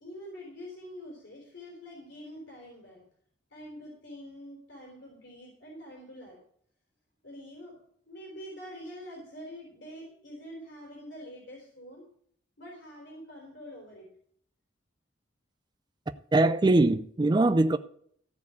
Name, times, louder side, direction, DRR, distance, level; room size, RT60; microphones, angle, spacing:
voice 1, 0.0-3.0 3.5-6.4 7.2-7.8 8.1-12.0 12.6-14.1, equal, 70° left, 3.6 m, -45 dB
voice 2, 16.3-17.8, right 2 dB, 25° right, 0.4 m, -22 dB
14.5 x 4.8 x 8.2 m
head